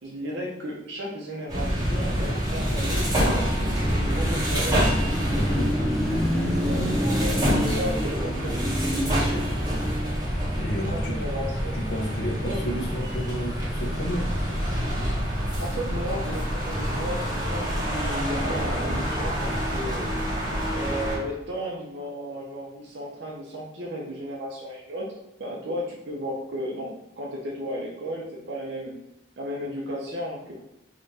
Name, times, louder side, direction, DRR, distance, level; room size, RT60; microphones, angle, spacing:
voice 1, 0.0-3.7 4.0-4.9 6.6-8.6 8.8-9.5 10.9-11.8 12.3-12.6 15.6-20.1 20.7-25.1 25.4-28.9 29.4-30.5, equal, 75° right, -3 dB, 0.7 m, -34 dB
sound 1, 1.5-21.2, equal, 20° right, 1.2 m, -27 dB
Car passing by / Traffic noise roadway noise / Engine, 3.2-10.5, equal, ahead, 0.7 m, -29 dB
voice 2, 5.3-5.7 10.6-11.1 11.7-14.3, equal, 80° left, -1 dB, 0.9 m, -31 dB
3.7 x 3.0 x 2.7 m, 0.87 s
head